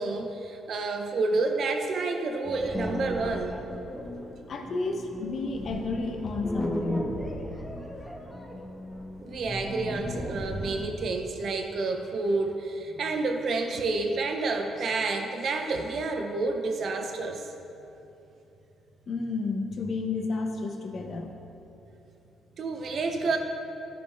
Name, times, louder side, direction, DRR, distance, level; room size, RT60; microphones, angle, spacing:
voice 1, 0.0-3.6 9.2-17.5 22.6-23.4, right 3 dB, 60° right, 4 dB, 0.8 m, -29 dB
sound 1, 2.4-11.0, equal, 10° left, 1.1 m, -36 dB
voice 2, 4.5-7.1 19.1-21.3, left 3 dB, 55° left, 4 dB, 0.9 m, -31 dB
12.5 x 5.2 x 3.5 m, 2.9 s
cardioid pair, 90°, 0 cm